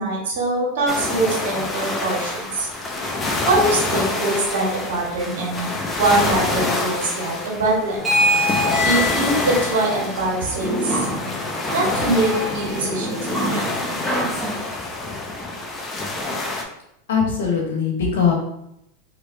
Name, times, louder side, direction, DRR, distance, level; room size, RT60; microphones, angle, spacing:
voice 1, 0.0-2.7 3.5-5.7 5.9-8.1 8.8-11.0 11.7-13.6, right 2 dB, 75° right, -3 dB, 1.5 m, -23 dB
sound 1, 0.9-16.6, left 2 dB, 25° left, 0.7 m, -27 dB
sound 2, 8.0-14.5, left 1 dB, 5° right, 1.1 m, -25 dB
voice 2, 17.1-18.3, left 6 dB, 80° left, 0 dB, 1.1 m, -20 dB
3.3 x 3.1 x 2.7 m, 0.79 s
hypercardioid pair, 105°, 0 cm